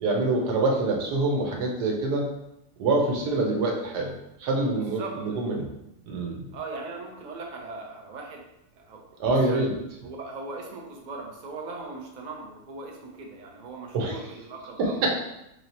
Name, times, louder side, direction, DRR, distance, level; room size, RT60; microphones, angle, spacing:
voice 1, 0.0-2.3 2.8-4.1 4.4-5.6 6.1-6.5 9.2-9.7 13.9-14.2 14.8-15.1, right 2 dB, 85° right, 0 dB, 1.4 m, -25 dB
voice 2, 4.8-5.4 6.5-8.4 8.7-9.0 9.5-9.6 10.0-15.1, right 3 dB, 60° right, 0 dB, 0.4 m, -39 dB
3.0 x 2.9 x 4.2 m, 0.86 s
omnidirectional pair, 1.7 m